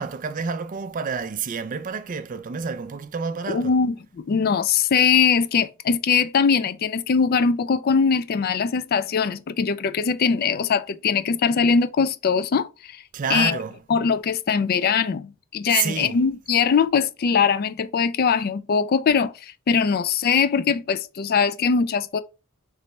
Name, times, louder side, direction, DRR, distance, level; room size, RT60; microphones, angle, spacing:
voice 1, 0.0-3.7 13.1-13.8 15.7-16.2, right 6 dB, 35° right, 0.4 m, -29 dB
voice 2, 3.5-4.0 4.2-13.0 13.3-13.6 13.9-22.2, left 6 dB, 45° left, 0.3 m, -21 dB
3.2 x 3.2 x 4.0 m
head